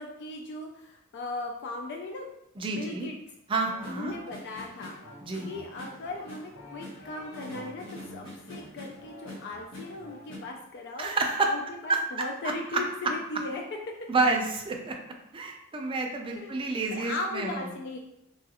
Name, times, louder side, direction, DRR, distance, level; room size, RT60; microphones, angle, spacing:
voice 1, 0.0-2.3 2.7-3.2 3.8-4.9 5.4-11.1 11.5-13.6 16.4-18.0, left 2 dB, 55° left, 2 dB, 0.3 m, -38 dB
voice 2, 2.6-3.1 3.5-4.1 5.2-5.5 11.0-11.5 14.1-14.9 15.3-17.7, right 3 dB, 25° right, 2 dB, 0.4 m, -29 dB
sound 1, 3.6-10.4, left 1 dB, 80° left, 1.2 m, -45 dB
3.0 x 2.3 x 2.8 m, 0.83 s
head